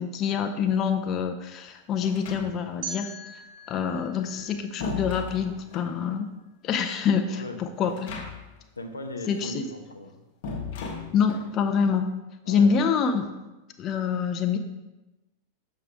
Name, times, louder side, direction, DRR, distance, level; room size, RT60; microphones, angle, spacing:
voice 1, 0.0-3.4 3.7-6.3 6.6-8.2 9.3-9.7 11.1-12.1 12.5-13.3 13.8-14.6, left 6 dB, 30° left, 6 dB, 0.4 m, -26 dB
sound 1, 2.0-2.9 4.1-6.0 7.8-8.7 8.9-9.0 10.4-11.6, left 4 dB, 50° left, 0.9 m, -36 dB
sound 2, 2.8-5.8, right 3 dB, 50° right, 1.1 m, -42 dB
voice 2, 7.3-7.7 8.8-10.2 12.4-12.7, left 1 dB, 80° left, 5 dB, 0.6 m, -38 dB
6.7 x 4.6 x 3.4 m, 1.0 s
figure-of-eight pair, 90°, 0 cm